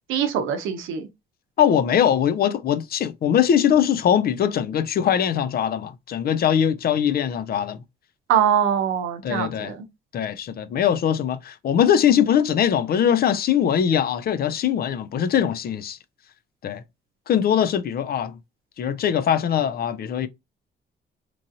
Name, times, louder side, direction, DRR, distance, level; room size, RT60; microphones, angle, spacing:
voice 1, 0.1-1.1 8.3-9.8, right 9 dB, 90° right, 0.6 m, -23 dB
voice 2, 1.6-7.8 9.2-9.7 10.1-16.0 16.6-16.8 17.3-18.4 18.8-20.3, left 9 dB, 50° left, 0.4 m, -21 dB
3.0 x 2.6 x 2.6 m
cardioid pair, 90°, 20 cm